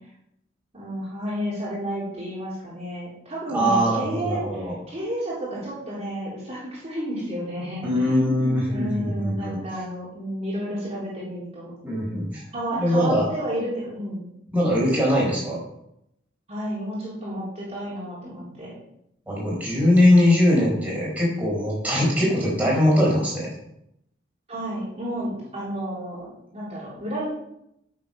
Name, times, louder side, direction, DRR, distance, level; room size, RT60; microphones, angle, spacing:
voice 1, 0.7-11.7 12.5-14.3 15.1-15.3 16.5-18.7 24.5-26.3 26.5-27.3, equal, 35° right, -8 dB, 3.6 m, -31 dB
voice 2, 3.5-4.7 7.8-9.6 11.8-12.4 12.8-13.3 14.5-15.6 19.3-23.5, left 1 dB, 10° right, -5 dB, 4.6 m, -21 dB
9.5 x 7.5 x 5.4 m, 0.80 s
head